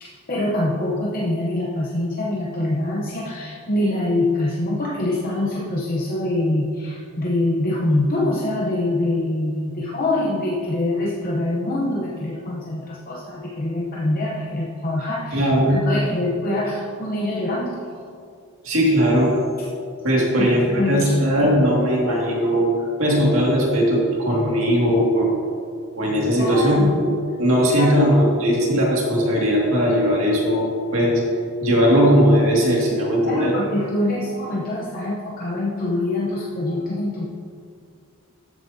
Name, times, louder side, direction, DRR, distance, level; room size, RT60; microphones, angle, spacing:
voice 1, 0.0-17.8 19.6-19.7 20.3-21.3 26.4-27.0 27.7-28.1 33.3-37.3, left 1 dB, 40° left, -4 dB, 0.8 m, -24 dB
voice 2, 15.3-15.8 18.6-19.3 20.0-22.7 23.0-25.3 26.0-31.2 31.6-33.5, equal, 65° right, -3 dB, 2.1 m, -18 dB
13.0 x 8.2 x 2.8 m, 2.3 s
head